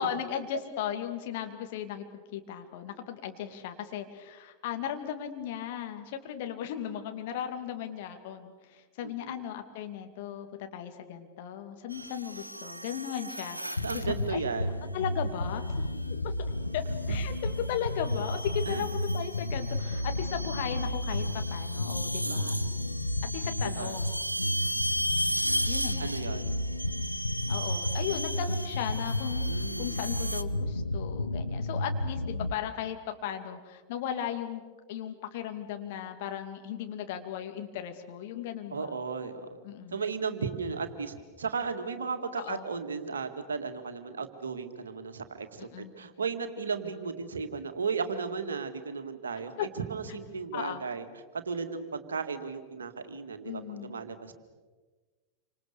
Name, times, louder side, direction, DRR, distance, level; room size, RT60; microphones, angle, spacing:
voice 1, 0.0-2.1 2.3-14.4 14.9-15.6 16.7-18.9 19.1-22.6 23.2-24.2 24.6-24.9 25.7-26.3 27.5-34.6 34.9-39.0 39.6-40.0 42.4-42.7 45.6-45.9 49.6-49.7 50.5-50.8 53.4-54.0, left 9 dB, 50° left, 6 dB, 2.5 m, -36 dB
voice 2, 9.0-9.4 13.8-14.9 18.7-18.9 22.2-22.7 23.6-24.0 26.0-26.5 29.5-29.9 38.7-39.6 39.9-51.0 51.5-54.3, right 5 dB, 70° right, 7 dB, 2.1 m, -35 dB
sound 1, 11.9-14.3 15.7-16.1 16.9-30.4, equal, 85° right, 0.9 m, -36 dB
sound 2, 13.8-32.5, left 1 dB, 80° left, 0.9 m, -32 dB
28.0 x 26.0 x 6.8 m, 1.4 s
figure-of-eight pair, 90°, 0 cm